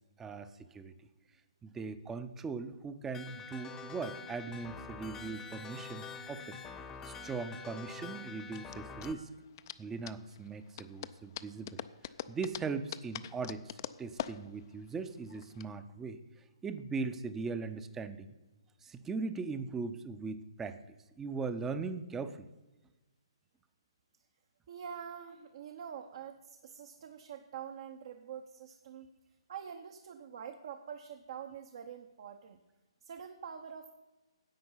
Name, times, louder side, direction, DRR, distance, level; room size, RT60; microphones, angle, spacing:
voice 1, 0.2-0.9 1.6-6.6 7.0-9.3 9.8-11.8 12.3-16.2 16.6-18.3 18.8-20.8 21.2-22.5, right 4 dB, 10° right, 11 dB, 0.6 m, -39 dB
sound 1, 3.1-9.1, left 5 dB, 15° left, 0.8 m, -46 dB
sound 2, 6.7-15.6, left 11 dB, 45° left, 0.4 m, -45 dB
voice 2, 24.7-29.1 29.5-32.6 33.0-33.9, right 8 dB, 55° right, 6 dB, 0.8 m, -45 dB
10.5 x 7.7 x 5.6 m, 1.1 s
hypercardioid pair, 145°, 3 cm